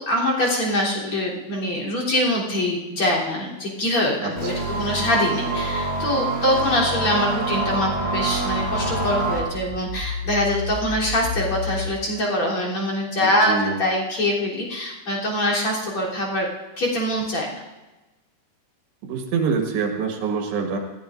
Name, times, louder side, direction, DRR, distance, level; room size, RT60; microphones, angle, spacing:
voice 1, 0.0-13.5 13.8-16.5 16.8-17.5, left 1 dB, 35° left, -3 dB, 3.8 m, -24 dB
voice 2, 4.2-4.5 13.2-13.8 19.0-20.8, right 5 dB, 90° right, 2 dB, 3.7 m, -25 dB
sound 1, 4.4-9.4, right 2 dB, 20° left, 2.4 m, -25 dB
sound 2, 6.6-11.9, left 5 dB, 80° left, 3.9 m, -33 dB
20.0 x 15.5 x 2.5 m, 1.1 s
omnidirectional pair, 4.7 m